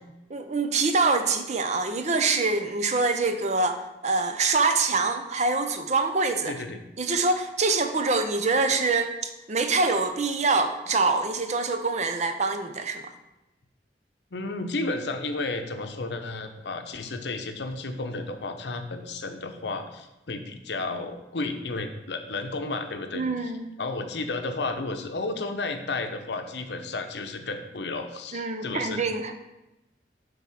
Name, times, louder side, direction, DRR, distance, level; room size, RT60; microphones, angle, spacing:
voice 1, 0.3-6.5 7.0-13.1 23.1-23.7 28.3-29.3, right 3 dB, 40° right, 7 dB, 0.6 m, -25 dB
voice 2, 6.5-6.8 14.3-23.5 23.8-29.0, left 3 dB, 70° left, 6 dB, 0.7 m, -32 dB
7.3 x 3.6 x 5.8 m, 0.95 s
head